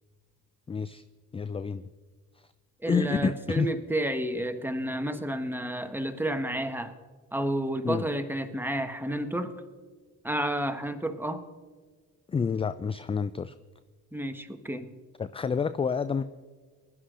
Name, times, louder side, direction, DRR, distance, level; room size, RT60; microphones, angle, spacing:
voice 1, 0.7-1.0 1.3-1.8 2.9-3.7 7.8-8.0 12.3-13.5 15.2-16.2, left 5 dB, 15° left, 14 dB, 0.3 m, -28 dB
voice 2, 2.8-6.9 7.3-9.5 10.2-11.4 14.1-14.9, right 1 dB, 5° right, 7 dB, 1.3 m, -31 dB
21.5 x 11.5 x 2.5 m, 1.4 s
hypercardioid pair, 45°, 40 cm